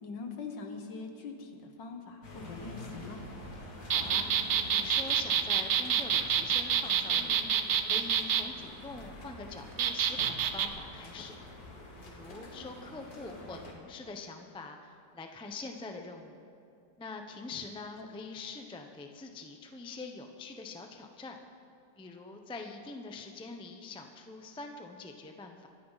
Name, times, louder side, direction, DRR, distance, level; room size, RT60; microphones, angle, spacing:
voice 1, 0.0-3.2 18.0-18.1, left 4 dB, 85° left, 4 dB, 2.0 m, -43 dB
sound 1, 2.2-13.7, left 1 dB, 60° left, 2.3 m, -46 dB
voice 2, 3.8-4.3 4.7-7.4 7.9-11.4 12.0-16.4 17.0-21.4 22.0-25.7, left 3 dB, 10° left, 4 dB, 0.3 m, -44 dB
sound 2, 3.9-8.4 9.8-10.7, right 8 dB, 65° right, 0.7 m, -27 dB
24.0 x 9.8 x 4.1 m, 2.6 s
omnidirectional pair, 1.9 m